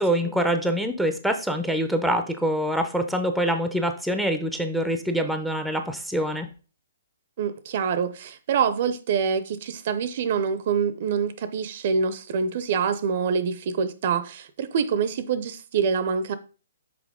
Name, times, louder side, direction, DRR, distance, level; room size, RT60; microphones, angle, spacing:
voice 1, 0.0-6.5, equal, ahead, 0.6 m, -25 dB
voice 2, 7.4-16.3, right 6 dB, 50° right, 0.6 m, -25 dB
6.0 x 4.7 x 3.6 m
hypercardioid pair, 150°, 0 cm